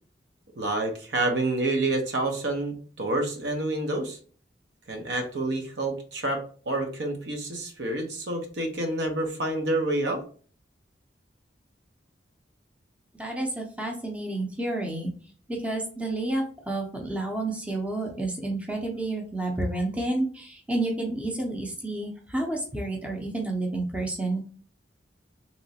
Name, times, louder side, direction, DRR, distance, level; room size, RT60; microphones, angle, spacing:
voice 1, 0.6-4.2 4.9-10.2, right 2 dB, 80° right, 4 dB, 0.7 m, -28 dB
voice 2, 13.2-15.1 15.5-24.4, right 2 dB, 5° right, 0 dB, 0.5 m, -30 dB
3.1 x 2.9 x 2.8 m, 0.43 s
head